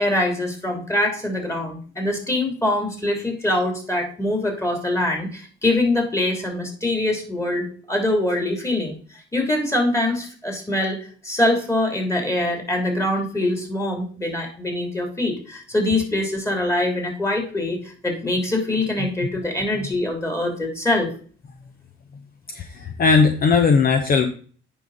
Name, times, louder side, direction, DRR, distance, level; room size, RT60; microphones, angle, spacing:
voice 1, 0.0-9.0 9.3-11.0 11.2-21.1, left 1 dB, 15° left, 2 dB, 3.1 m, -23 dB
voice 2, 22.5-24.3, left 5 dB, 45° left, 6 dB, 0.9 m, -18 dB
9.2 x 5.4 x 4.1 m, 0.43 s
cardioid pair, 90°, 20 cm